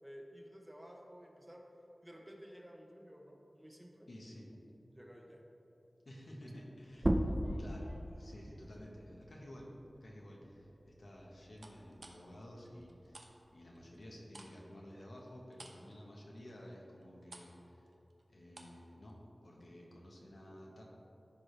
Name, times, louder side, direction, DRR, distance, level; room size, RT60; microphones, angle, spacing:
voice 1, 0.0-1.7 2.0-4.1 4.9-5.4, equal, 15° right, 0 dB, 1.0 m, -53 dB
voice 2, 4.1-4.5 6.0-7.3 7.6-17.9 18.3-19.2 19.4-20.8, equal, 75° left, -2 dB, 1.4 m, -52 dB
sound 1, 6.9-12.2 12.6-14.3, right 1 dB, 30° right, 0.6 m, -39 dB
sound 2, 7.2-8.9 9.4-9.8 11.6-13.3 13.6-18.8 19.1-19.2, right 2 dB, 65° right, 0.8 m, -58 dB
14.0 x 4.8 x 3.4 m, 2.9 s
wide cardioid pair, 70°, 0 cm